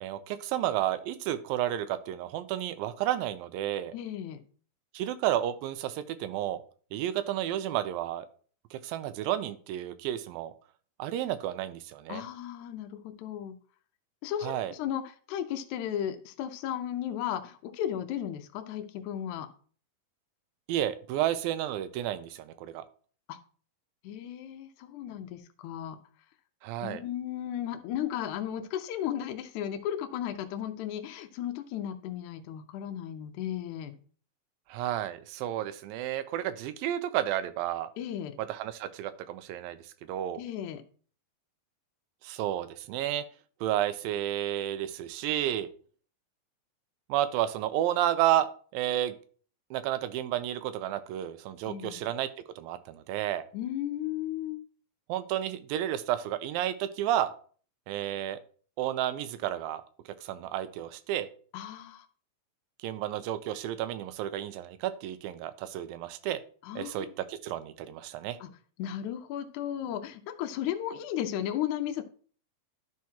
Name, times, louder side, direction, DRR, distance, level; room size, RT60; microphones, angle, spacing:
voice 1, 0.0-3.9 4.9-6.6 6.9-8.3 8.7-10.5 11.0-12.2 14.4-14.7 20.7-22.8 26.6-27.0 34.7-37.9 38.4-39.8 40.1-40.4 42.2-43.2 43.6-45.7 47.1-48.5 48.7-49.2 49.7-52.3 52.6-53.5 55.1-57.3 57.9-58.4 58.8-59.8 60.2-61.3 62.8-66.4 66.8-68.4, right 12 dB, 90° right, 13 dB, 2.4 m, -31 dB
voice 2, 3.9-4.4 12.1-13.6 14.2-19.5 23.3-23.4 24.0-26.0 26.8-34.0 38.0-38.4 40.4-40.8 51.6-52.1 53.5-54.6 61.5-62.1 66.6-67.1 68.4-68.5 68.8-72.0, left 10 dB, 75° left, 7 dB, 1.8 m, -35 dB
12.0 x 4.7 x 2.8 m, 0.44 s
omnidirectional pair, 4.0 m